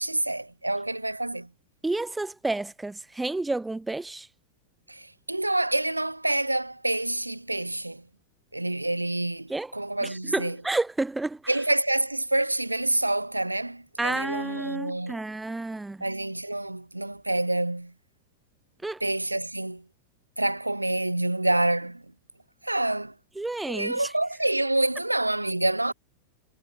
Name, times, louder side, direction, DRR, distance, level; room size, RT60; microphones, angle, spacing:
voice 1, 0.0-1.5 4.9-8.0 8.5-10.6 11.5-15.2 16.0-17.9 19.0-19.8 20.4-22.1 22.6-23.1 23.7-25.9, right 2 dB, 85° right, 3.9 m, -27 dB
voice 2, 1.8-4.3 9.5-9.7 10.0-11.4 14.0-16.0 18.8-19.0 23.4-24.1, right 2 dB, 5° right, 2.1 m, -30 dB
figure-of-eight pair, 90°, 0 cm